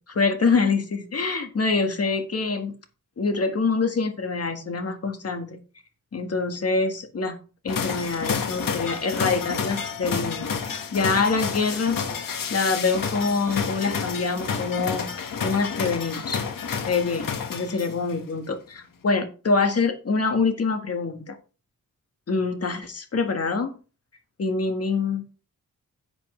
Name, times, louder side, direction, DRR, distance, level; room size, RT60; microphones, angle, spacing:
voice 1, 0.1-2.7 3.2-5.6 6.1-7.4 7.6-15.1 15.4-16.4 16.8-21.3 22.3-23.7 24.4-25.2, left 4 dB, 45° left, 1.6 m, -25 dB
sound 1, 7.7-18.1, left 6 dB, 85° left, 1.6 m, -30 dB
11.0 x 7.3 x 3.2 m
wide cardioid pair, 125°, 33 cm